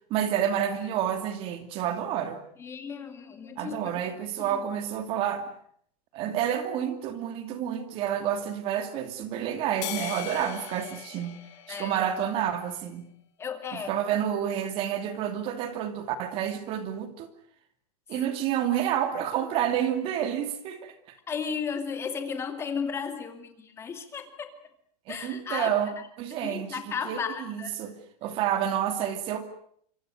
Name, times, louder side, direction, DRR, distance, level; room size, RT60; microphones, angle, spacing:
voice 1, 0.1-2.4 3.6-5.5 6.1-11.4 11.7-13.1 13.7-17.3 18.1-20.9 25.1-25.9 26.2-29.5, right 10 dB, 25° right, 8 dB, 2.6 m, -29 dB
voice 2, 2.6-3.8 4.4-4.6 11.7-12.0 13.4-14.0 21.3-24.5 25.1-25.7 26.4-27.8, left 6 dB, 15° left, 7 dB, 2.4 m, -34 dB
sound 1, 9.8-12.4, left 12 dB, 50° left, 4.3 m, -39 dB
26.5 x 25.0 x 6.6 m, 0.65 s
supercardioid pair, 165°, 20 cm